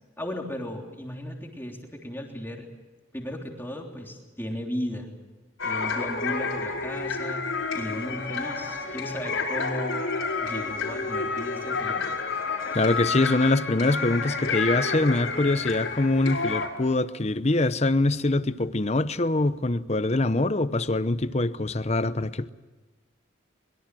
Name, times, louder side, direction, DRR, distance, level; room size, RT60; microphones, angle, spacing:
voice 1, 0.2-2.7 3.1-5.1 5.6-7.4 7.7-10.0 10.4-12.1, equal, 10° left, 3.3 m, -35 dB
sound 1, 5.6-16.7, left 4 dB, 75° left, 4.9 m, -30 dB
voice 2, 12.7-22.5, left 2 dB, 30° left, 0.8 m, -24 dB
24.0 x 22.5 x 7.6 m
head